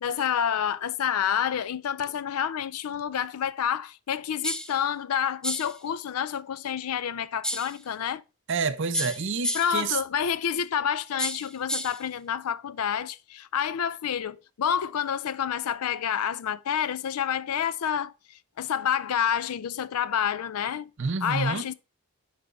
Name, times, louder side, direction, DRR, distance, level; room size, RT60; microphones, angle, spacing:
voice 1, 0.0-8.2 9.5-20.9 21.2-21.7, left 8 dB, 90° left, 0.4 m, -28 dB
sound 1, 4.4-4.8 5.4-5.8 7.4-7.8 8.9-9.8 11.2-12.0, equal, 5° left, 0.4 m, -31 dB
voice 2, 8.5-10.0 21.0-21.7, right 5 dB, 55° right, 0.6 m, -28 dB
9.4 x 3.4 x 3.9 m
head